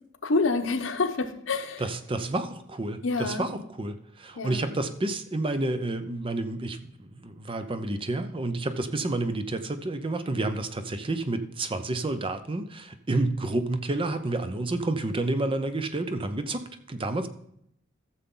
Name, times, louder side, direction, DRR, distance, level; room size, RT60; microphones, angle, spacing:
voice 1, 0.2-1.8 3.0-3.4 4.3-4.6, left 3 dB, 80° left, 7 dB, 1.0 m, -27 dB
voice 2, 1.8-17.3, right 2 dB, 25° right, 10 dB, 0.6 m, -30 dB
14.0 x 7.0 x 3.8 m, 0.73 s
head